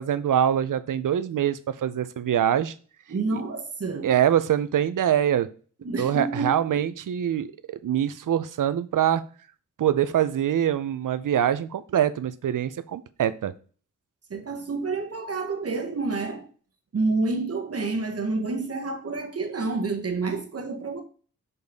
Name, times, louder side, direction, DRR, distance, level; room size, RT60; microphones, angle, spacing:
voice 1, 0.0-2.7 4.0-5.5 6.0-9.2 9.8-13.5, right 10 dB, 75° right, 0.5 m, -24 dB
voice 2, 3.1-4.1 5.8-6.9 14.3-16.5 16.9-21.0, right 3 dB, 50° right, 1.0 m, -29 dB
6.8 x 4.1 x 3.5 m
wide cardioid pair, 120°, 32 cm